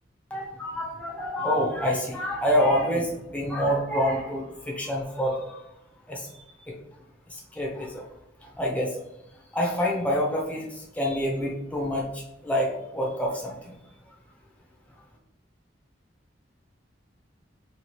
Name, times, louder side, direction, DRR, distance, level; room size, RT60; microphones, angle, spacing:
voice 1, 0.3-5.6 6.1-6.3 6.7-6.8 7.3-8.0 8.5-9.0 9.5-13.7, equal, 10° left, -3 dB, 0.8 m, -27 dB
4.7 x 2.4 x 2.9 m, 0.85 s
head